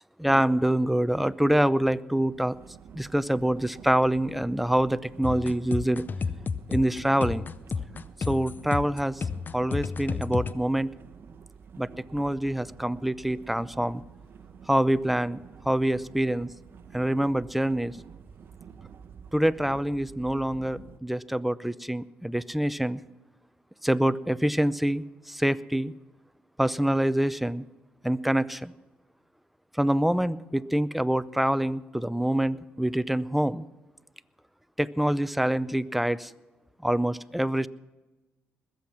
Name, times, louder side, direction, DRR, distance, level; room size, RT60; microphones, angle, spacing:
voice 1, 0.2-2.6 2.9-6.0 6.7-7.5 8.3-9.2 9.5-10.9 11.8-14.0 14.7-15.4 15.6-16.5 16.9-18.0 19.3-23.0 23.8-25.9 26.6-27.6 28.0-28.7 29.8-33.7 34.8-36.3 36.8-37.7, right 1 dB, ahead, 16 dB, 0.6 m, -25 dB
sound 1, 2.3-21.0, right 6 dB, 55° right, 0.9 m, -49 dB
sound 2, 5.2-10.5, left 5 dB, 40° left, 0.6 m, -31 dB
21.0 x 7.8 x 5.8 m, 1.1 s
supercardioid pair, 65°, 5 cm